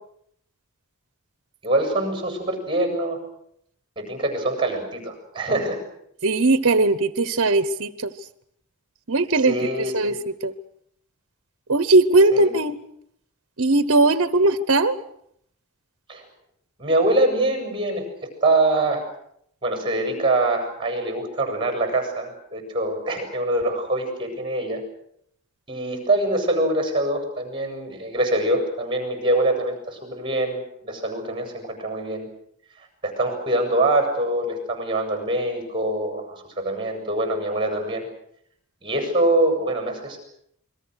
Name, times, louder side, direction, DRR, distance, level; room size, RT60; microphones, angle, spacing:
voice 1, 1.6-3.2 4.0-5.8 9.5-10.1 12.3-12.5 16.1-16.2 16.8-18.1 18.4-19.1 19.6-24.8 25.7-32.3 33.0-38.1 38.8-40.2, right 2 dB, 20° right, 5 dB, 7.2 m, -24 dB
voice 2, 6.2-8.1 9.1-10.1 10.4-10.5 11.7-12.7 13.6-15.0, right 2 dB, 60° right, 13 dB, 1.0 m, -19 dB
28.5 x 22.0 x 6.4 m, 0.71 s
head